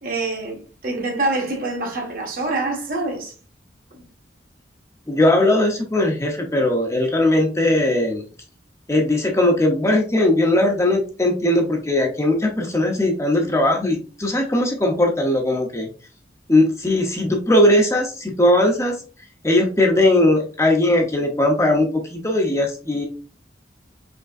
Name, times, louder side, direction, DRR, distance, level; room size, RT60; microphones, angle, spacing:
voice 1, 0.0-3.3 3.9-4.0, right 2 dB, 50° right, 1.4 m, -26 dB
voice 2, 5.1-8.2 8.9-15.9 16.5-19.0 19.4-23.1, left 1 dB, 15° left, 0.7 m, -19 dB
5.1 x 3.6 x 2.4 m
head